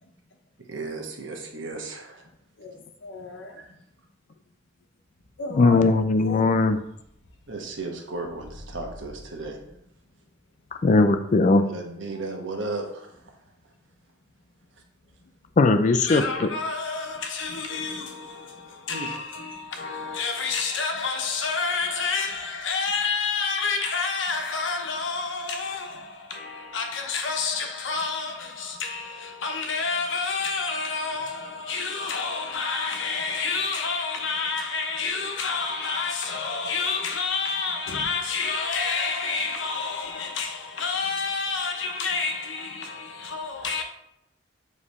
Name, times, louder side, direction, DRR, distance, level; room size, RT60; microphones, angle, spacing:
voice 1, 0.7-2.2 3.6-3.7 7.5-9.6 11.7-13.1 18.9-19.1, right 3 dB, 75° right, 1.1 m, -34 dB
voice 2, 2.6-3.6 5.4-6.4 12.1-12.2 15.2-15.3 16.1-43.8, left 4 dB, 75° left, 0.9 m, -29 dB
voice 3, 5.5-6.8 10.8-11.6 15.6-16.5, left 3 dB, 40° left, 0.4 m, -19 dB
7.2 x 3.2 x 4.2 m
head